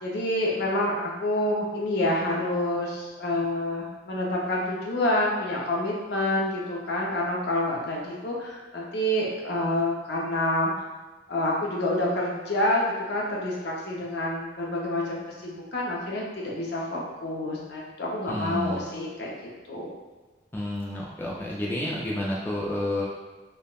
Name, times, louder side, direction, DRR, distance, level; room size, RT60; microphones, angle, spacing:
voice 1, 0.0-10.7 11.3-19.3 19.7-19.9, left 1 dB, 65° left, -3 dB, 0.6 m, -28 dB
voice 2, 18.3-18.8 20.5-23.1, left 1 dB, 10° left, -5 dB, 0.3 m, -30 dB
3.5 x 2.1 x 2.3 m, 1.2 s
head